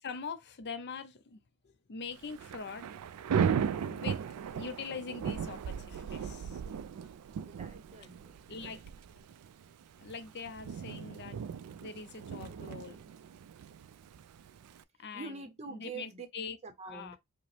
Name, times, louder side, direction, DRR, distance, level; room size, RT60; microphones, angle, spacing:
voice 1, 0.0-2.9 3.9-4.2 4.5-6.6 8.5-8.8 10.0-11.4 11.8-13.0 15.0-16.6 16.9-17.2, left 5 dB, 50° left, 0.5 m, -43 dB
Thunder / Rain, 2.2-14.8, right 7 dB, 80° right, 0.3 m, -37 dB
voice 2, 7.5-8.8 12.4-12.9 15.1-16.3 16.6-17.2, right 4 dB, 30° right, 0.7 m, -46 dB
5.0 x 2.1 x 3.2 m
head